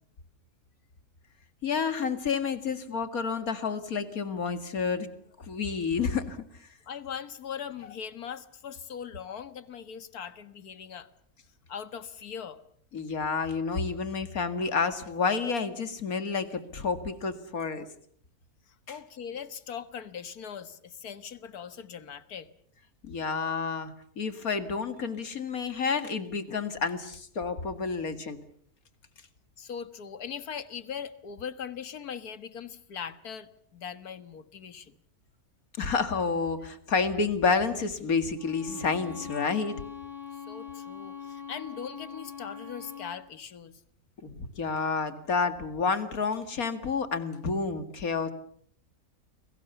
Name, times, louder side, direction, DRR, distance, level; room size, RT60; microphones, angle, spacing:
voice 1, 1.6-5.1 5.4-6.7 12.9-17.9 18.9-19.0 23.0-28.4 35.8-39.8 44.2-48.3, left 5 dB, 70° left, 10 dB, 2.4 m, -30 dB
voice 2, 6.9-11.1 11.7-12.6 18.7-22.5 29.6-35.0 40.3-43.8, left 7 dB, 90° left, 13 dB, 1.9 m, -40 dB
Bowed string instrument, 38.4-43.2, left 7 dB, 40° left, 5.4 m, -42 dB
30.0 x 22.0 x 7.0 m, 0.63 s
omnidirectional pair, 1.6 m